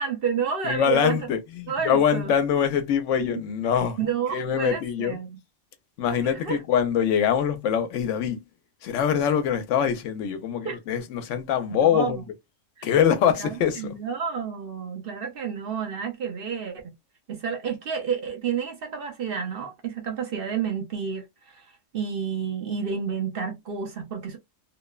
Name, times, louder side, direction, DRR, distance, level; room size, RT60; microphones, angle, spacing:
voice 1, 0.0-1.2 1.7-2.3 3.2-3.4 4.0-5.4 6.1-6.6 10.6-10.8 11.8-12.2 12.8-12.9 13.4-16.9 17.3-24.4, right 6 dB, 55° right, 0.7 m, -30 dB
voice 2, 0.6-4.0 4.3-5.2 6.0-8.4 8.8-12.2 12.8-14.0, left 8 dB, 80° left, 0.9 m, -24 dB
2.8 x 2.1 x 2.2 m
omnidirectional pair, 1.2 m